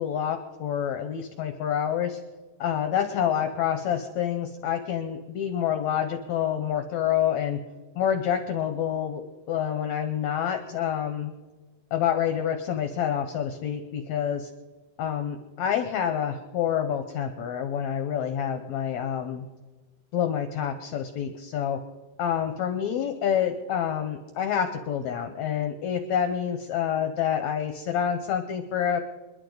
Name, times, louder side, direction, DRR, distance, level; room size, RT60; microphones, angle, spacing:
voice 1, 0.0-2.2 2.6-7.6 8.0-9.2 9.5-11.3 11.9-14.5 15.0-19.5 20.1-21.8 22.2-29.0, left 9 dB, 70° left, 7 dB, 2.0 m, -27 dB
27.0 x 11.0 x 4.0 m, 1.3 s
omnidirectional pair, 3.9 m